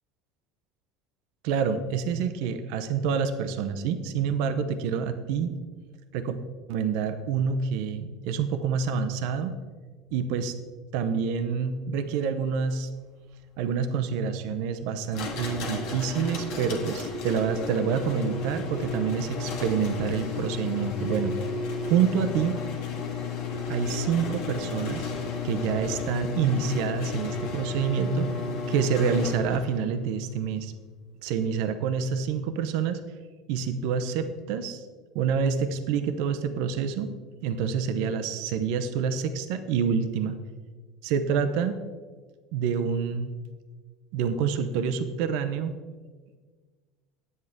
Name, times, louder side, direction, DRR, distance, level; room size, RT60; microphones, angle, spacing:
voice 1, 1.4-5.5 6.1-6.4 6.7-9.6 10.1-10.5 10.9-12.9 13.6-21.4 21.8-22.6 23.7-25.1 25.4-28.4 28.7-30.7 31.2-33.0 33.5-34.8 35.1-37.1 37.4-40.4 41.0-41.8 42.5-43.3 44.1-45.8, right 6 dB, 70° right, 9 dB, 0.7 m, -27 dB
sound 1, 15.1-29.8, left 5 dB, 70° left, 1.6 m, -33 dB
9.5 x 8.0 x 3.6 m, 1.4 s
supercardioid pair, 105°, 0 cm